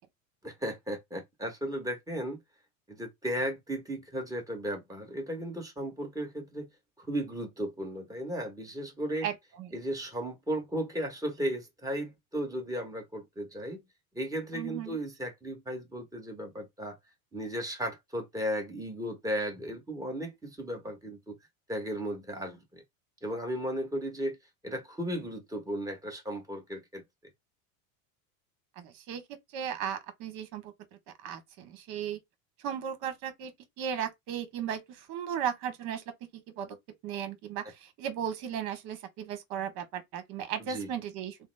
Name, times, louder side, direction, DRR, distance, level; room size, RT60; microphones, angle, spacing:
voice 1, 0.4-2.4 2.9-6.7 7.0-9.3 9.7-13.8 14.1-17.0 17.3-21.4 21.7-22.8 23.2-24.4 24.6-27.0 40.6-40.9, equal, 10° right, 1.2 m, -35 dB
voice 2, 14.5-15.0 28.8-29.2 29.5-30.7 31.2-32.2 32.6-33.5 33.8-36.0 36.3-36.8 37.0-41.4, right 9 dB, 60° right, 1.3 m, -36 dB
3.4 x 2.1 x 3.4 m
supercardioid pair, 110°, 43 cm